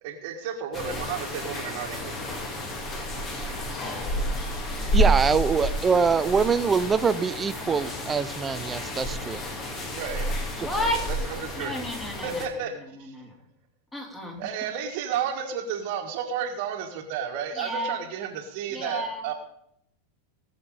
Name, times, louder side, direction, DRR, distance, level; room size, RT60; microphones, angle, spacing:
voice 1, 0.0-2.4 9.9-10.3 10.8-10.9 11.3-11.7 12.2-12.7 13.0-13.1 14.4-19.3, right 7 dB, 50° right, 4 dB, 1.7 m, -32 dB
sound 1, 0.7-12.5, equal, 25° left, 2.4 m, -30 dB
voice 2, 4.9-9.4, right 5 dB, 15° right, 14 dB, 0.7 m, -24 dB
voice 3, 10.6-11.1 11.5-12.5 12.9-13.3 13.9-14.7 17.5-18.0 18.7-19.3, left 1 dB, 10° left, 1 dB, 3.2 m, -32 dB
19.0 x 6.7 x 5.1 m, 0.73 s
figure-of-eight pair, 90°, 0 cm